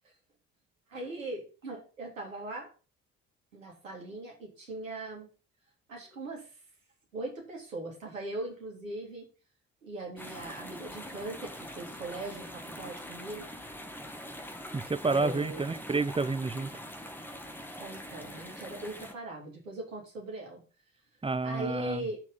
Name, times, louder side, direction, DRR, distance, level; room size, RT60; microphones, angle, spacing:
voice 1, 0.9-2.7 3.5-5.3 5.9-6.5 7.1-9.3 9.8-13.5 15.1-15.8 17.8-20.6 21.4-22.2, right 2 dB, 85° right, 3.1 m, -40 dB
sound 1, 10.2-19.1, equal, 5° left, 2.3 m, -44 dB
voice 2, 14.7-16.7 21.2-22.1, right 3 dB, 15° right, 0.9 m, -29 dB
12.5 x 6.0 x 3.8 m
figure-of-eight pair, 50°, 38 cm